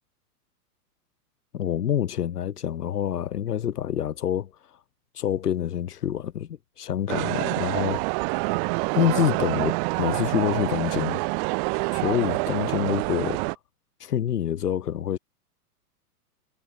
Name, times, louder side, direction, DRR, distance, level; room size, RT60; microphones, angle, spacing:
voice 1, 1.5-4.5 5.1-8.0 8.9-11.2 11.7-13.4 14.0-15.2, left 10 dB, 75° left, 3.7 m, -27 dB
sound 1, 7.1-13.5, right 36 dB, 35° right, 1.1 m, -27 dB
hypercardioid pair, 120°, 47 cm